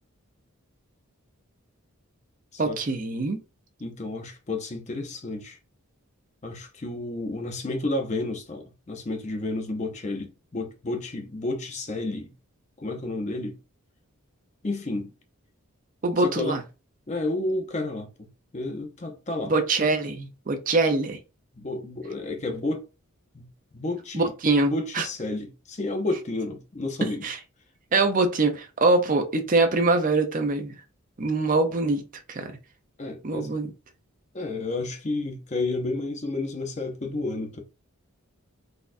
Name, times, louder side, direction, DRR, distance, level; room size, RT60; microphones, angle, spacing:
voice 1, 2.6-3.4 16.0-16.6 19.4-21.2 24.1-25.1 27.2-27.4 27.9-30.7 31.2-32.6 33.2-33.7, right 3 dB, 35° right, 0.5 m, -24 dB
voice 2, 3.8-5.6 6.4-12.3 12.8-13.6 14.6-15.1 16.2-16.6 17.1-18.3 18.5-19.5 21.6-22.8 23.3-23.5 23.7-24.3 24.6-27.3 33.0-33.5 34.3-37.6, left 2 dB, 30° left, 0.6 m, -31 dB
4.1 x 2.3 x 2.5 m
head